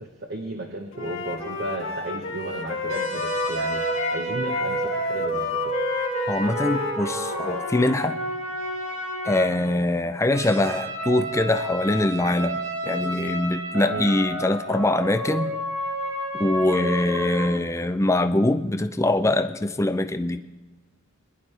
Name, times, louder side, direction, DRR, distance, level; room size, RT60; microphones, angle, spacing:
voice 1, 0.0-3.8 4.1-5.8 13.9-14.1, right 1 dB, 55° right, 2 dB, 1.2 m, -34 dB
Wind instrument woodwind instrument, 0.9-8.0, left 3 dB, 90° left, 2.0 m, -30 dB
sound 1, 2.9-9.8 10.3-17.5, right 1 dB, 85° right, 2.4 m, -30 dB
voice 2, 6.3-8.2 9.2-15.5 16.3-20.4, left 1 dB, 15° left, 9 dB, 0.5 m, -23 dB
22.0 x 10.5 x 3.4 m, 1.1 s
head